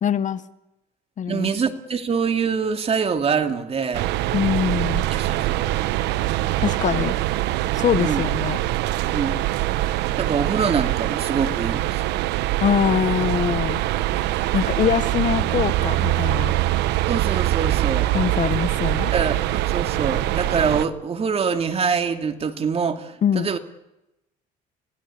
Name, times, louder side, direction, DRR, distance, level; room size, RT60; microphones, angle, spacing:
voice 1, 0.0-0.4 1.2-1.5 4.3-5.0 6.6-7.2 7.7-8.6 12.6-13.8 14.5-16.5 18.1-19.1 23.2-23.5, left 8 dB, 45° left, 1.1 m, -23 dB
voice 2, 1.3-4.1 5.1-5.9 7.9-8.2 9.1-9.3 10.2-12.0 17.1-18.1 19.1-23.6, right 6 dB, 35° right, 2.5 m, -25 dB
sound 1, 3.9-20.8, right 15 dB, 90° right, 1.0 m, -23 dB
26.5 x 17.0 x 8.5 m
cardioid pair, 110°, 17 cm